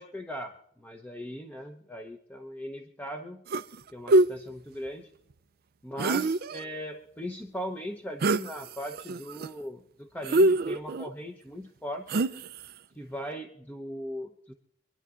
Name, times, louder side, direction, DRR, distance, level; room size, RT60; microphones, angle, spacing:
voice 1, 0.0-3.4 3.9-5.1 5.8-12.2 13.0-14.5, equal, 10° left, 3 dB, 0.9 m, -39 dB
sound 1, 3.5-3.8 4.1-4.3 6.0-6.6 8.2-8.5 8.9-9.5 10.2-11.1 12.1-12.6, right 2 dB, 55° right, 0.5 m, -24 dB
26.0 x 11.0 x 2.5 m, 0.75 s
head